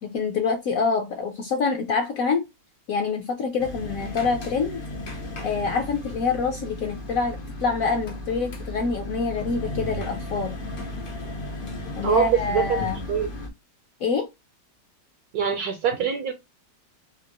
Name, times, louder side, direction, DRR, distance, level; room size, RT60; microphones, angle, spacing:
voice 1, 0.0-2.4 2.9-4.8 5.4-10.5 12.0-13.0 14.0-14.3, left 5 dB, 65° left, 0.9 m, -26 dB
sound 1, 3.6-13.5, left 1 dB, 80° left, 0.4 m, -35 dB
voice 2, 12.0-13.3 15.3-16.3, right 8 dB, 70° right, 1.0 m, -24 dB
3.7 x 2.5 x 2.8 m
omnidirectional pair, 2.0 m